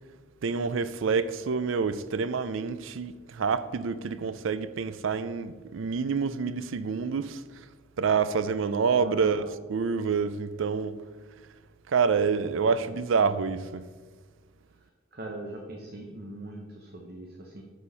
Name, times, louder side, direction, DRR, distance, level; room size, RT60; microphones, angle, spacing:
voice 1, 0.4-7.4 8.0-11.0 11.9-13.9, right 5 dB, 75° right, 0.4 m, -27 dB
voice 2, 9.0-9.4 12.5-12.7 13.2-13.4 15.1-17.6, right 1 dB, 50° right, 0.8 m, -41 dB
9.5 x 4.4 x 5.5 m
head